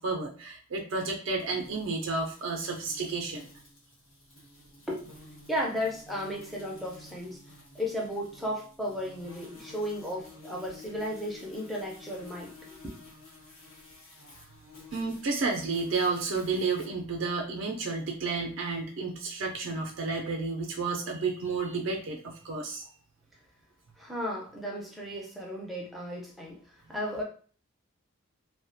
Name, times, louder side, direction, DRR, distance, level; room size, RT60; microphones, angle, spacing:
voice 1, 0.0-3.5 14.9-22.8 25.1-25.2, right 4 dB, 60° right, 1 dB, 0.4 m, -31 dB
sound 1, 1.4-16.8, left 2 dB, 80° left, 1.0 m, -52 dB
voice 2, 5.5-7.4 7.7-12.5 24.0-26.6 26.9-27.2, equal, ahead, -2 dB, 0.4 m, -34 dB
2.3 x 2.1 x 2.6 m, 0.41 s
head